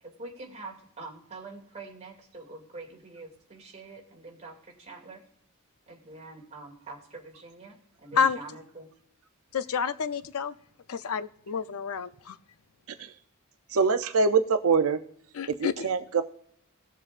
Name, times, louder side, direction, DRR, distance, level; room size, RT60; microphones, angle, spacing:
voice 1, 0.0-5.2 5.9-8.9, right 3 dB, 30° right, 2.4 m, -45 dB
voice 2, 9.5-10.5 10.9-12.4 15.4-15.8, left 6 dB, 80° left, 0.5 m, -29 dB
voice 3, 13.7-15.0 15.5-16.2, right 4 dB, 70° right, 0.5 m, -24 dB
18.5 x 7.3 x 2.5 m
head